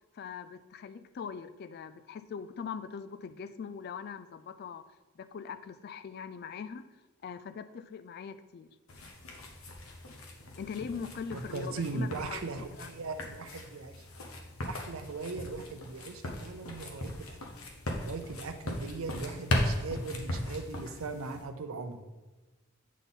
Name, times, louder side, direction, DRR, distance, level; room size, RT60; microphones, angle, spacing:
voice 1, 0.1-4.8 5.2-6.9 7.2-8.7 10.6-12.5 12.8-12.9, left 6 dB, 50° left, 12 dB, 0.3 m, -41 dB
sound 1, 8.9-21.4, left 1 dB, 85° left, 1.0 m, -38 dB
voice 2, 11.3-14.0 14.6-17.4 18.0-22.1, right 3 dB, 75° right, 7 dB, 0.6 m, -39 dB
8.3 x 4.0 x 3.7 m, 1.2 s
head